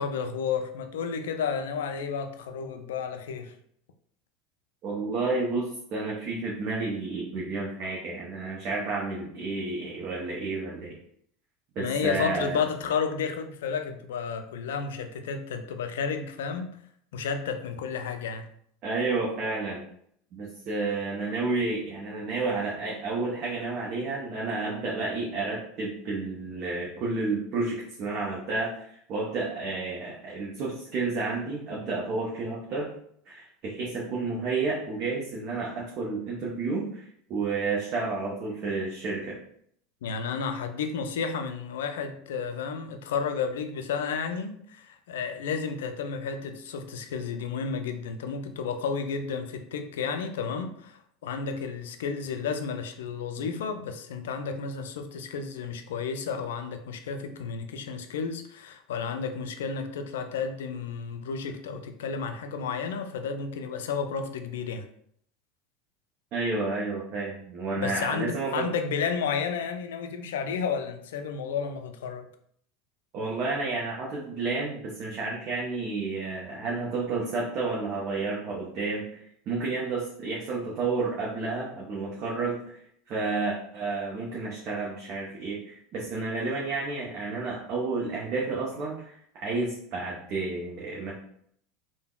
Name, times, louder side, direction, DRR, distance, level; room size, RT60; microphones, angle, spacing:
voice 1, 0.0-3.6 11.8-16.8 17.1-18.5 40.0-64.9 67.8-72.3, left 6 dB, 75° left, 7 dB, 0.3 m, -32 dB
voice 2, 4.8-11.0 11.8-12.6 18.8-19.8 20.3-32.9 33.3-37.0 37.3-39.4 66.3-68.7 73.1-82.8 83.1-91.1, right 3 dB, 50° right, -4 dB, 0.7 m, -31 dB
3.4 x 2.1 x 2.3 m, 0.67 s
hypercardioid pair, 80°, 0 cm